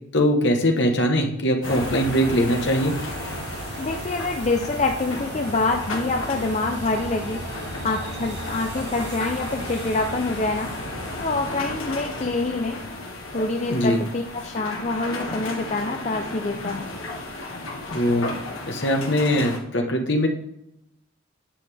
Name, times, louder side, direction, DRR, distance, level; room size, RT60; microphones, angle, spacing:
voice 1, 0.1-2.9 13.7-14.0 17.9-18.3 18.7-20.3, equal, 60° left, 3 dB, 1.3 m, -21 dB
sound 1, 1.6-19.6, left 2 dB, 85° left, 1.7 m, -35 dB
sound 2, 1.6-18.4, right 2 dB, 55° right, 1.1 m, -38 dB
voice 2, 3.8-7.4 7.8-10.7 11.2-12.8 13.3-16.9, left 3 dB, 35° left, 3 dB, 0.6 m, -26 dB
10.5 x 8.0 x 3.5 m, 0.80 s
head